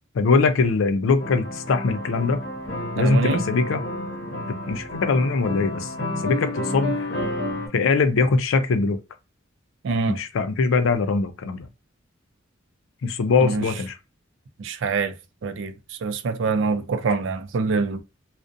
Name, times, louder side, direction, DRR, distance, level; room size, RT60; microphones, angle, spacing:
voice 1, 0.1-2.5 3.0-3.8 4.5-7.1 7.7-9.0 10.1-11.7 13.0-14.0, left 4 dB, 85° left, 0.4 m, -22 dB
sound 1, 1.2-7.7, left 1 dB, 60° left, 0.7 m, -30 dB
voice 2, 3.0-3.4 9.8-10.2 13.4-13.6 14.6-15.1 15.4-18.0, right 4 dB, 70° right, 0.4 m, -25 dB
2.4 x 2.1 x 2.5 m
head